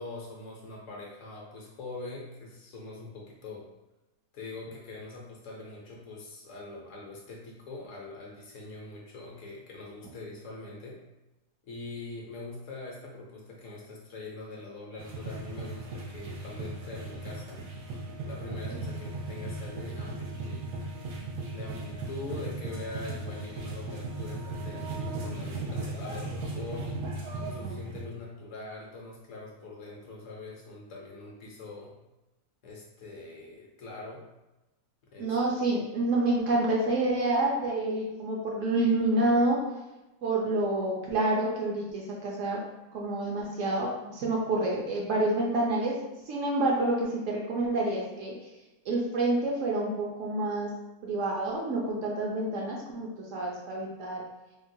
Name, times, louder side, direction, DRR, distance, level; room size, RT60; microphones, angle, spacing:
voice 1, 0.0-3.7 4.3-11.0 11.7-17.7 18.2-20.6 21.2-21.3 21.5-26.9 27.4-32.0 32.6-34.3 35.1-35.6, left 2 dB, 65° left, -2 dB, 0.9 m, -43 dB
sound 1, 15.0-28.0, right 2 dB, 90° right, 1.2 m, -37 dB
voice 2, 35.2-39.6 40.2-42.6 42.9-46.0 46.3-48.3 48.9-50.7 51.0-54.2, right 2 dB, 65° right, -2 dB, 0.9 m, -28 dB
3.7 x 2.0 x 2.6 m, 1.0 s
omnidirectional pair, 1.6 m